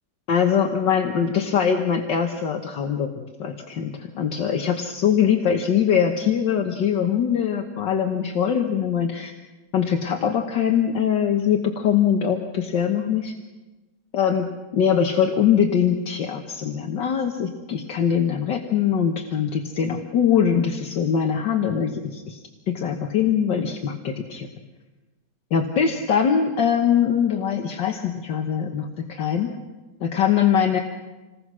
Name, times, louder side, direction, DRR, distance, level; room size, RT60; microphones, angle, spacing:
voice 1, 0.3-9.3 9.7-13.3 14.1-14.5 14.7-22.4 22.7-24.5 25.5-29.5 30.0-30.8, left 8 dB, 70° left, 4 dB, 1.9 m, -22 dB
27.5 x 20.0 x 6.2 m, 1.2 s
omnidirectional pair, 2.0 m